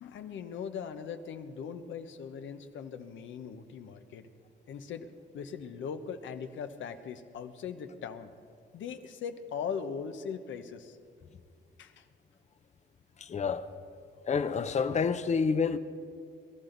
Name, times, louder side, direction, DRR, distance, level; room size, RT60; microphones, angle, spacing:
voice 1, 0.0-4.2 4.7-5.1 5.3-8.3 8.7-11.0 11.8-12.0, left 6 dB, 75° left, 1.1 m, -40 dB
voice 2, 13.2-13.7 14.2-15.8, left 5 dB, 35° left, 0.7 m, -28 dB
23.0 x 12.5 x 4.0 m
cardioid pair, 90°, 20 cm